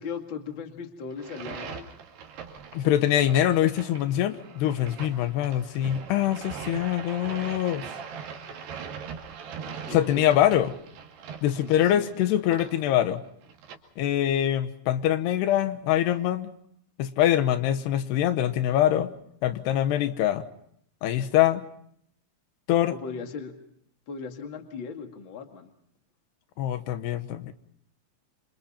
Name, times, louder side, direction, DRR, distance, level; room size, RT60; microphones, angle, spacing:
voice 1, 0.0-1.9 8.4-8.5 9.6-10.3 11.5-12.1 22.9-23.6 24.1-25.7, left 5 dB, 35° left, 5 dB, 2.3 m, -38 dB
sound 1, 1.1-13.8, right 7 dB, 75° right, 4.4 m, -41 dB
voice 2, 2.7-7.9 9.9-10.7 11.4-13.2 14.0-16.5 17.0-19.1 19.4-20.4 21.0-21.6 22.7-22.9 26.6-27.5, left 12 dB, 85° left, 10 dB, 3.2 m, -24 dB
28.0 x 27.0 x 4.4 m, 0.70 s
omnidirectional pair, 4.7 m